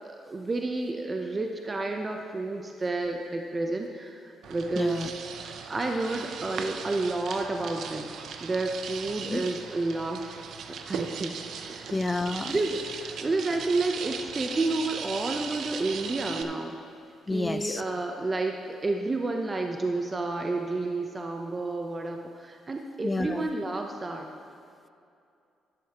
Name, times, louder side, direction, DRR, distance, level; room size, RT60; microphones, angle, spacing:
voice 1, 0.0-5.1 5.7-8.1 8.4-10.4 10.9-11.4 11.7-11.9 12.5-16.8 17.3-24.3, right 2 dB, 30° right, 3 dB, 0.7 m, -30 dB
sound 1, 4.4-16.4, right 6 dB, 70° right, 0.6 m, -38 dB
voice 2, 4.8-5.1 9.2-9.4 11.9-12.6 17.3-17.8 23.0-23.5, left 2 dB, 20° left, 11 dB, 0.4 m, -29 dB
11.5 x 11.5 x 3.0 m, 2.5 s
cardioid pair, 90°, 0 cm